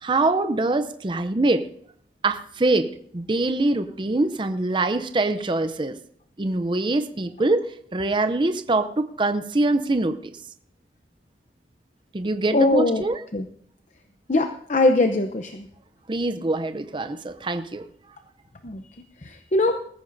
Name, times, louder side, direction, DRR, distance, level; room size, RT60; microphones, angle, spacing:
voice 1, 0.0-1.7 2.2-6.0 6.4-10.3 12.1-13.2 16.1-17.9, right 2 dB, 25° right, 10 dB, 0.5 m, -24 dB
voice 2, 12.5-13.0 13.3-13.5 14.3-15.7 18.6-18.8 19.2-19.8, left 2 dB, 40° left, 6 dB, 0.7 m, -21 dB
20.5 x 14.5 x 2.6 m, 0.63 s
head